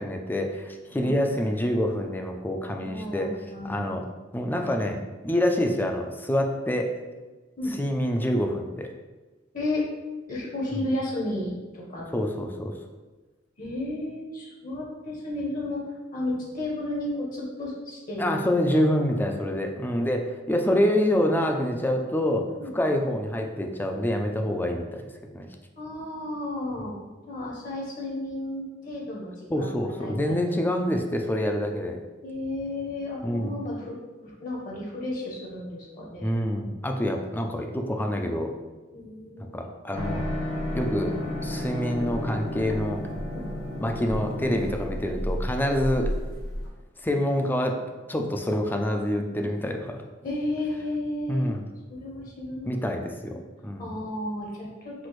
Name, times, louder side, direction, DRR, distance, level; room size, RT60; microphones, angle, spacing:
voice 1, 0.0-3.3 3.6-4.0 4.3-7.0 7.8-8.9 10.8-10.9 12.1-12.7 18.2-25.1 25.3-25.5 29.5-32.0 33.2-33.6 36.2-38.5 39.4-40.3 40.7-41.1 41.4-43.0 43.8-46.1 47.0-47.8 48.1-50.0 51.3-51.6 52.7-53.9, left 1 dB, 10° left, 3 dB, 0.4 m, -26 dB
voice 2, 2.8-3.9 7.6-7.7 9.5-9.8 10.3-12.2 13.6-18.4 19.1-19.2 22.6-22.7 25.8-26.9 27.3-30.4 32.2-34.0 34.2-36.3 38.9-39.6 43.3-43.5 50.2-51.5 51.9-52.7 53.8-55.1, left 1 dB, 45° left, -3 dB, 1.0 m, -33 dB
sound 1, 39.9-46.7, left 1 dB, 80° left, 1.3 m, -32 dB
6.0 x 2.5 x 3.1 m, 1.2 s
head